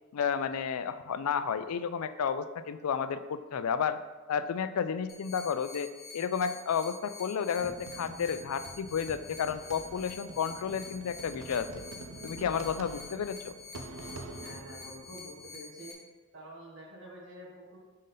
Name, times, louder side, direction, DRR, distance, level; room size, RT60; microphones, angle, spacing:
voice 1, 0.1-4.0 4.3-11.8 12.2-13.5, left 7 dB, 90° left, 12 dB, 0.4 m, -32 dB
sound 1, 5.1-15.9, left 4 dB, 45° left, 0.9 m, -48 dB
sound 2, 7.6-15.6, right 2 dB, 75° right, 0.5 m, -46 dB
voice 2, 14.4-15.9 16.3-17.8, right 1 dB, 55° right, -4 dB, 1.8 m, -48 dB
5.3 x 3.8 x 5.5 m, 1.3 s
head